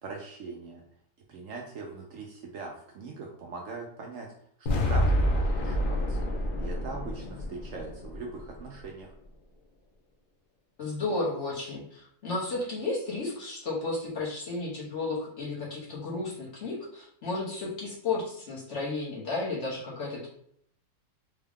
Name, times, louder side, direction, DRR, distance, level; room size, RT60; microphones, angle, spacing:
voice 1, 0.0-0.8 1.3-4.3 4.6-9.1, right 4 dB, 70° right, 0 dB, 0.8 m, -41 dB
sound 1, 4.7-8.8, equal, 75° left, 0.4 m, -28 dB
voice 2, 10.8-20.3, left 3 dB, 50° left, -5 dB, 1.2 m, -33 dB
3.5 x 2.3 x 3.5 m, 0.67 s
omnidirectional pair, 1.7 m